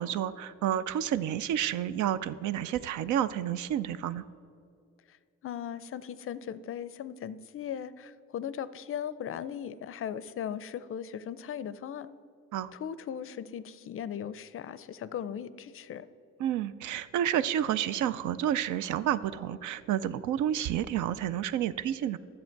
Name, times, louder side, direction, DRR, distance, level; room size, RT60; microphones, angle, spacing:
voice 1, 0.0-4.2 12.5-12.7 16.4-22.2, right 10 dB, 75° right, 15 dB, 0.5 m, -30 dB
voice 2, 5.4-12.1 12.7-16.1, left 9 dB, 45° left, 15 dB, 0.4 m, -38 dB
10.5 x 7.5 x 4.5 m, 2.5 s
cardioid pair, 90°, 30 cm